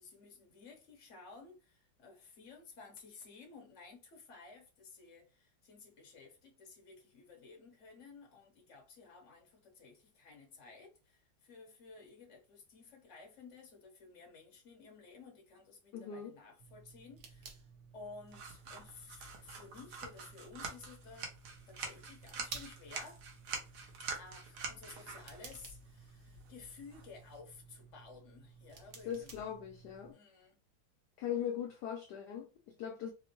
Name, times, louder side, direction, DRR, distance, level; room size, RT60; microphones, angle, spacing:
voice 1, 0.0-21.3 21.7-23.3 24.1-29.5 30.1-30.6, left 4 dB, 45° left, 1.1 m, -55 dB
voice 2, 15.9-16.3 29.1-30.1 31.2-33.1, left 9 dB, 75° left, 1.0 m, -40 dB
sound 1, 16.6-30.1, right 5 dB, 60° right, 1.3 m, -55 dB
sound 2, 18.3-27.4, right 4 dB, 90° right, 1.7 m, -46 dB
4.2 x 2.1 x 2.9 m
omnidirectional pair, 2.2 m